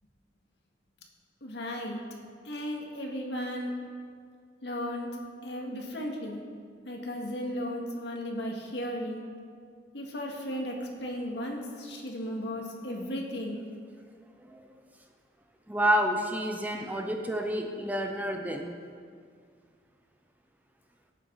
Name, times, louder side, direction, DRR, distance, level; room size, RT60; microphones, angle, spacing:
voice 1, 1.4-2.0 2.4-3.7 4.6-5.1 5.4-6.4 6.9-9.2 9.9-13.6, equal, 70° left, 0 dB, 2.0 m, -35 dB
voice 2, 15.7-18.8, equal, 10° right, 3 dB, 0.7 m, -29 dB
18.0 x 9.1 x 4.0 m, 2.1 s
head